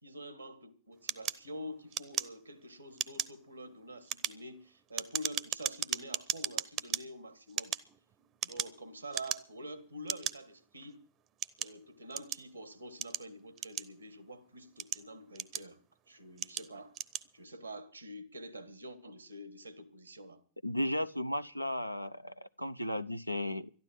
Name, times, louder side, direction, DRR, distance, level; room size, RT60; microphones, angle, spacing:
voice 1, 0.0-7.8 8.4-11.0 11.6-15.8 16.1-17.0 17.3-20.4, equal, 85° right, 1.9 m, -47 dB
sound 1, 1.1-2.6 2.9-3.4 3.9-7.0 7.5-8.8 9.1-9.6 10.1-10.3 11.0-12.5 13.0-14.2 14.6-15.9 16.4-16.7 16.9-17.3, right 11 dB, 35° right, 0.8 m, -36 dB
voice 2, 20.6-23.7, left 1 dB, 90° left, 0.6 m, -35 dB
12.5 x 12.0 x 7.6 m
figure-of-eight pair, 90°, 0 cm